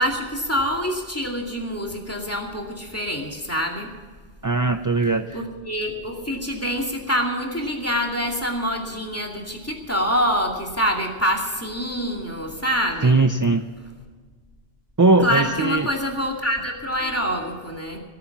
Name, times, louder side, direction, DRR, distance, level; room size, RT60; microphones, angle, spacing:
voice 1, 0.0-3.9 5.3-13.2 15.2-18.0, equal, 15° left, 1 dB, 2.4 m, -25 dB
voice 2, 4.4-5.4 13.0-13.7 15.0-15.9, right 3 dB, 25° right, 8 dB, 0.4 m, -19 dB
19.0 x 8.6 x 7.2 m, 1.5 s
omnidirectional pair, 1.1 m